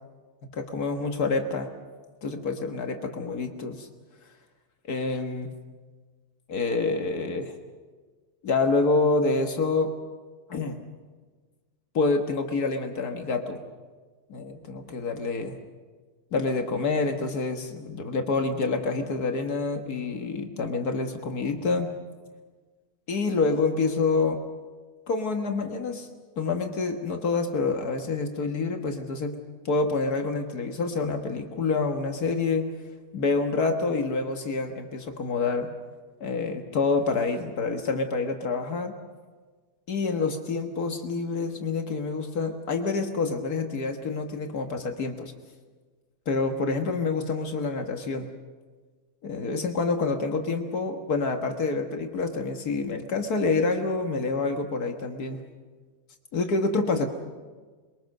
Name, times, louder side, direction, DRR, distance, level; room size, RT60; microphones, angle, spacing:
voice 1, 0.5-1.7 2.2-3.9 4.9-5.5 6.5-7.5 8.4-9.9 10.5-10.8 11.9-13.6 14.3-15.6 16.3-21.9 23.1-24.4 25.1-26.1 26.4-29.4 29.7-32.7 33.1-35.7 36.2-38.9 39.9-45.3 46.3-48.3 49.2-55.4 56.3-57.1, left 3 dB, 75° left, 4 dB, 2.0 m, -27 dB
28.0 x 22.5 x 6.6 m, 1.4 s
omnidirectional pair, 1.6 m